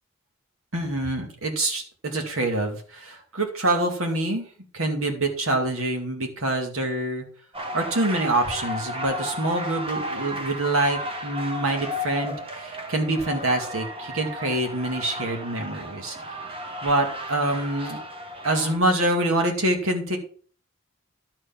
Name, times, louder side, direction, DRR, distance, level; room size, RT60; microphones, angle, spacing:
voice 1, 0.7-4.4 4.7-7.2 7.7-16.2 16.8-18.0 18.4-20.2, right 1 dB, 75° right, 3 dB, 2.2 m, -25 dB
sound 1, 7.5-18.8, equal, 25° right, 1.2 m, -34 dB
12.0 x 4.8 x 5.8 m, 0.43 s
head